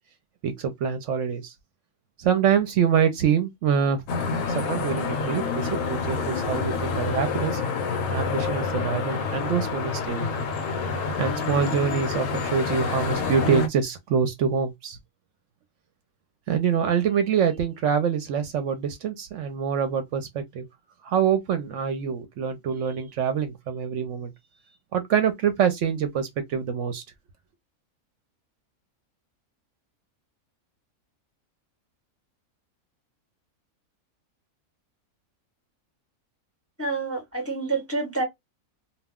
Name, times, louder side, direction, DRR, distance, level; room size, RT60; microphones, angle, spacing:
voice 1, 0.4-1.5 2.2-4.0 4.5-7.6 8.1-10.3 11.2-15.0 16.5-20.7 21.0-24.3 24.9-27.0, right 7 dB, 70° right, 0.8 m, -25 dB
sound 1, 4.1-13.7, left 4 dB, 70° left, 0.9 m, -28 dB
voice 2, 36.8-38.2, right 3 dB, 15° left, 0.6 m, -28 dB
2.3 x 2.1 x 3.4 m
omnidirectional pair, 1.5 m